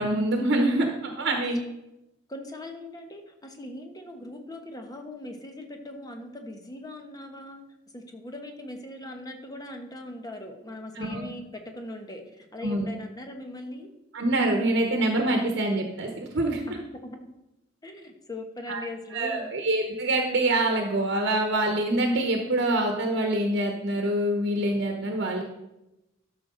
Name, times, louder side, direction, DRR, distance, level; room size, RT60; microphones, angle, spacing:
voice 1, 0.0-1.6 10.9-11.2 12.6-12.9 14.1-16.6 18.7-18.8 19.1-25.4, right 1 dB, 60° right, 3 dB, 1.1 m, -25 dB
voice 2, 2.3-7.6 7.9-13.9 16.7-17.3 17.8-19.5, left 1 dB, 20° left, 4 dB, 1.1 m, -40 dB
12.5 x 6.1 x 3.8 m, 0.93 s
head